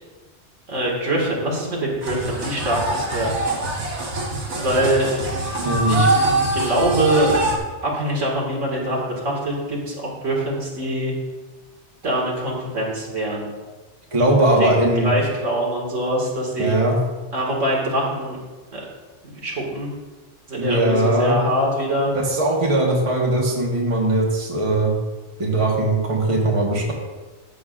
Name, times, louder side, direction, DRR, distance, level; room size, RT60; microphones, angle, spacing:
voice 1, 0.7-3.3 4.5-5.1 5.9-7.4 7.8-11.1 12.0-13.5 14.6-16.8 17.3-18.4 18.7-18.9 19.4-19.9 20.5-22.1, right 1 dB, 90° right, -3 dB, 2.3 m, -23 dB
sound 1, 2.0-7.6, right 2 dB, 70° right, 1.6 m, -24 dB
voice 2, 5.6-6.1 14.1-15.1 16.6-17.0 20.6-21.4 22.1-24.9 25.4-26.9, right 1 dB, 30° right, -1 dB, 1.3 m, -20 dB
13.5 x 7.0 x 2.5 m, 1.2 s
omnidirectional pair, 1.2 m